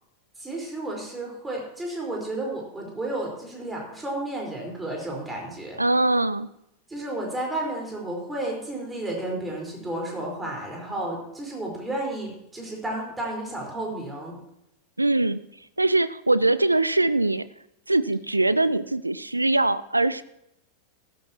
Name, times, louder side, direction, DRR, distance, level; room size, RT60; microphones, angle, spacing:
voice 1, 0.4-5.8 6.9-14.3, right 1 dB, 10° right, -1 dB, 4.7 m, -32 dB
voice 2, 5.8-6.5 15.0-15.4 15.8-17.5 17.9-20.2, right 2 dB, 85° right, 16 dB, 0.4 m, -22 dB
14.5 x 13.0 x 3.0 m, 0.80 s
figure-of-eight pair, 90°, 0 cm